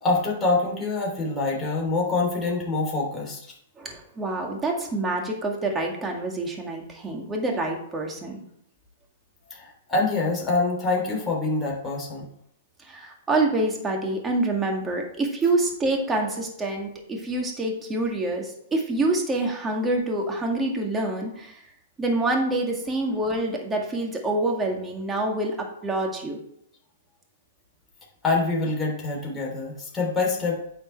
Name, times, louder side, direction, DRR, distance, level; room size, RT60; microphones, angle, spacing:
voice 1, 0.0-3.4 9.5-12.3 28.2-30.6, left 3 dB, 15° left, -4 dB, 3.1 m, -25 dB
voice 2, 3.8-8.4 12.8-21.6 22.0-25.6 25.8-26.4, right 2 dB, 15° right, 1 dB, 2.0 m, -26 dB
9.2 x 5.5 x 4.6 m, 0.71 s
hypercardioid pair, 130°, 0 cm